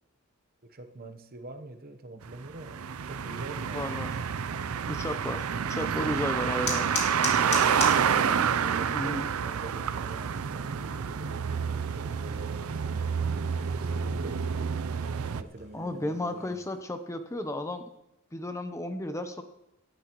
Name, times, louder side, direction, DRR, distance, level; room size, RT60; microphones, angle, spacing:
voice 1, 0.6-3.8 7.2-8.0 8.6-14.9 15.3-16.6, right 2 dB, 45° right, 7 dB, 0.9 m, -45 dB
sound 1, 2.2-15.4, right 7 dB, 85° right, 0.5 m, -29 dB
voice 2, 3.7-4.1 4.9-6.9 8.9-9.3 15.7-17.8 18.3-19.4, left 1 dB, 15° left, 8 dB, 0.7 m, -33 dB
sound 2, 5.6-16.8, left 4 dB, 50° left, 2.8 m, -42 dB
17.0 x 12.5 x 3.0 m, 0.87 s
head